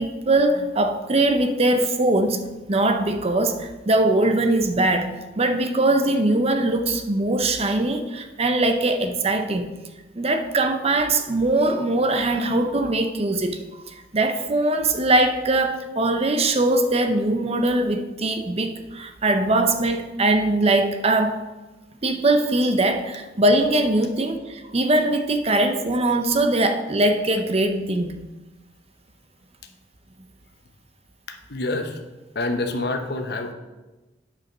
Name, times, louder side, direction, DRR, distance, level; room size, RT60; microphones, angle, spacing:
voice 1, 0.0-2.4 2.7-9.7 10.2-21.4 22.0-28.1, right 2 dB, 35° right, 7 dB, 0.7 m, -21 dB
voice 2, 31.3-32.0 32.3-33.5, left 2 dB, 60° left, 6 dB, 1.0 m, -27 dB
9.1 x 5.2 x 6.1 m, 1.1 s
head